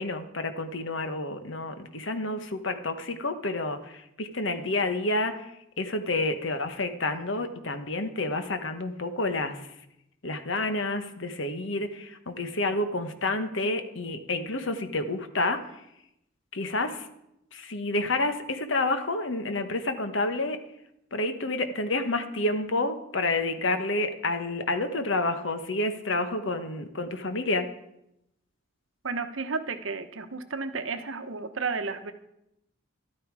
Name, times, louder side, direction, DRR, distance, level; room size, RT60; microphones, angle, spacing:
voice 1, 0.0-5.5 5.8-9.6 10.2-15.6 16.5-17.1 17.5-20.6 21.1-27.6, left 2 dB, 70° left, 8 dB, 1.3 m, -29 dB
voice 2, 29.0-32.1, right 4 dB, 75° right, 9 dB, 1.0 m, -32 dB
13.5 x 12.0 x 4.8 m, 0.82 s
head